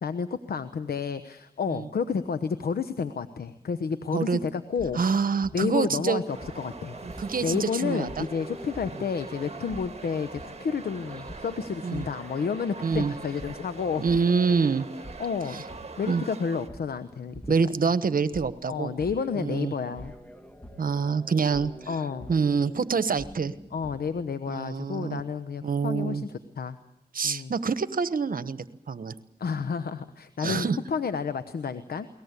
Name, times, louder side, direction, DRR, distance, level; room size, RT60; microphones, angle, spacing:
voice 1, 0.0-5.0 5.5-7.0 7.4-14.0 15.2-17.8 18.7-20.1 21.9-22.3 23.7-26.8 27.2-27.5 29.4-32.1, left 6 dB, 70° left, 11 dB, 1.0 m, -31 dB
sound 1, 4.8-24.4, equal, 5° left, 2.3 m, -47 dB
voice 2, 4.9-6.2 7.0-8.3 11.8-12.0 12.8-13.1 14.0-14.8 16.1-16.2 17.5-18.9 19.3-19.7 20.8-21.7 22.3-23.5 24.5-25.2 25.6-26.2 27.1-29.1 30.4-30.8, right 5 dB, 60° right, 13 dB, 1.2 m, -26 dB
sound 2, 6.3-16.7, right 4 dB, 40° right, 1.6 m, -42 dB
22.0 x 19.0 x 8.3 m, 0.89 s
cardioid pair, 45°, 16 cm